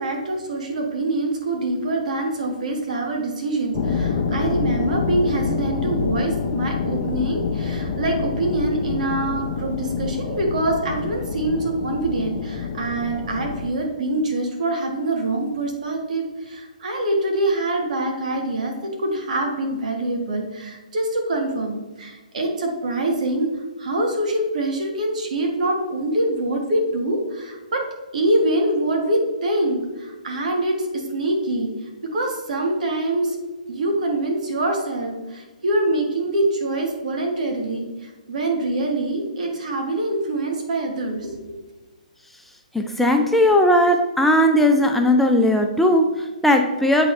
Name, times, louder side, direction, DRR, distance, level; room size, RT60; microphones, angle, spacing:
voice 1, 0.0-23.5 23.8-27.8 28.1-31.7 32.1-33.4 33.7-41.4, right 2 dB, 65° right, 2 dB, 1.6 m, -24 dB
sound 1, 3.7-13.7, left 5 dB, 35° left, 0.7 m, -27 dB
voice 2, 42.7-47.1, left 1 dB, 5° left, 3 dB, 0.4 m, -17 dB
8.1 x 4.1 x 3.1 m, 1.2 s
hypercardioid pair, 135°, 4 cm